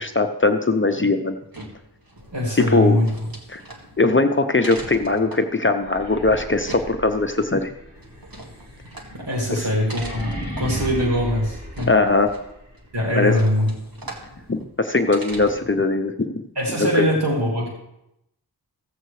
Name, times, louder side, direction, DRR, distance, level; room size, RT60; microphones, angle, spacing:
voice 1, 0.0-1.4 2.6-3.0 3.5-3.6 4.0-7.7 9.5-9.7 11.9-12.3 13.1-13.3 14.5-16.4 16.9-17.1, left 3 dB, 30° left, 6 dB, 0.7 m, -20 dB
sound 1, 1.3-15.8, right 1 dB, 60° right, 1.8 m, -41 dB
voice 2, 2.3-3.1 9.2-11.9 12.9-13.7 16.6-17.7, left 1 dB, 90° right, -3 dB, 2.5 m, -22 dB
sound 2, 5.8-12.7, equal, 25° right, 3.6 m, -36 dB
15.0 x 7.8 x 3.2 m, 0.83 s
wide cardioid pair, 45°, 40 cm